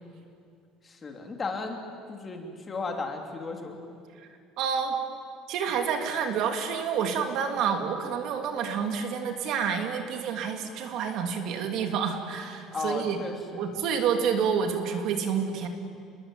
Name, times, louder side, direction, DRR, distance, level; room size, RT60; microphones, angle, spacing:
voice 1, 0.8-1.8 2.1-3.7 12.7-13.7, left 4 dB, 20° left, 3 dB, 3.0 m, -35 dB
voice 2, 4.6-5.0 5.5-13.2 13.5-15.7, right 7 dB, 55° right, 4 dB, 3.1 m, -28 dB
29.5 x 21.5 x 9.2 m, 2.3 s
cardioid pair, 160°, 0 cm